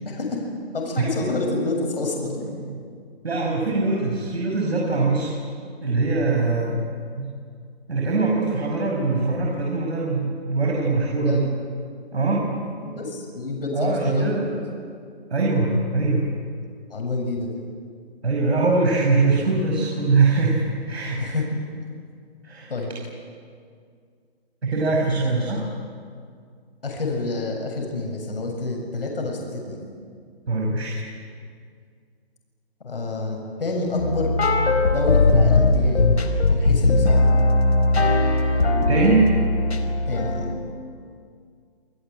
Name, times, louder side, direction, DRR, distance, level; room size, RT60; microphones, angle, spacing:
voice 1, 0.1-0.4 0.7-2.5 11.1-11.5 12.8-14.6 16.9-17.6 21.2-21.4 22.7-22.9 26.8-29.8 32.8-36.1 36.5-37.2 40.1-40.5, left 2 dB, 60° left, 1 dB, 7.4 m, -28 dB
voice 2, 1.0-1.3 2.6-2.8 3.2-5.3 5.8-6.9 7.2-7.3 7.9-11.5 12.1-12.6 12.8-13.0 13.7-14.6 15.3-16.3 18.2-21.4 22.4-22.7 24.6-25.7 30.5-31.0 38.9-39.3, right 3 dB, 80° right, -1 dB, 6.1 m, -22 dB
sound 1, 34.0-40.5, left 2 dB, 80° left, 4.2 m, -19 dB
29.0 x 20.0 x 9.1 m, 2.2 s
hypercardioid pair, 180°, 32 cm